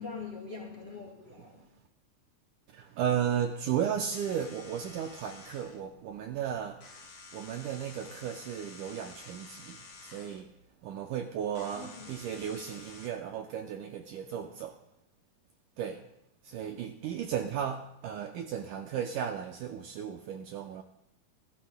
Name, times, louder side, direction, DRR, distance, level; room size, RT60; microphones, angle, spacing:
voice 1, 0.0-1.7 11.8-12.1, left 5 dB, 70° left, 1.0 m, -43 dB
voice 2, 2.7-7.1 7.3-10.5 10.8-14.8 15.8-16.0 16.4-20.8, right 9 dB, 85° right, 1.9 m, -35 dB
sound 1, 4.1-13.1, left 3 dB, 50° left, 1.5 m, -51 dB
28.5 x 12.0 x 2.2 m
omnidirectional pair, 4.3 m